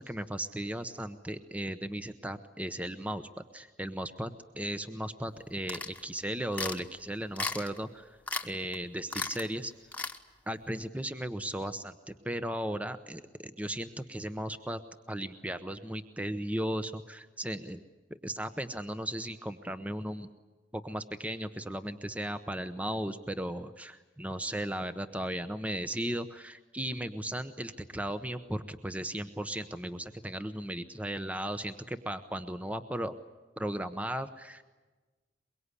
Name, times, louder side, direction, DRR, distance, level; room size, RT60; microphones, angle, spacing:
voice 1, 0.0-3.3 3.5-8.2 8.4-9.7 10.5-14.8 15.1-17.8 18.1-20.3 20.7-33.1 33.6-34.6, right 1 dB, 10° right, 10 dB, 0.9 m, -36 dB
sound 1, 5.7-6.0 6.5-6.8 7.4-7.8 8.3-8.5 8.7-8.8 9.1-9.5 9.9-10.2, left 3 dB, 10° left, 1.3 m, -35 dB
23.5 x 23.0 x 9.8 m, 1.2 s
head